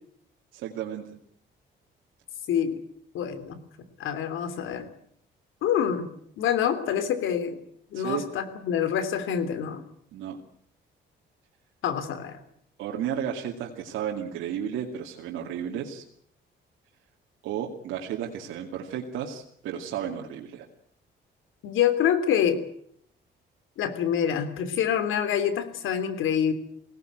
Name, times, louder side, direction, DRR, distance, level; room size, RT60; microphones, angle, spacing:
voice 1, 0.5-1.0 7.9-8.3 10.1-10.4 12.8-16.0 17.4-20.7, right 9 dB, 90° right, 0 dB, 2.4 m, -33 dB
voice 2, 2.5-2.8 3.1-3.6 4.0-4.9 5.6-6.1 6.4-7.6 7.9-9.8 11.8-12.4 21.6-22.6 23.8-26.5, left 9 dB, 85° left, 11 dB, 3.1 m, -26 dB
22.0 x 17.5 x 9.2 m, 0.67 s
cardioid pair, 90°, 20 cm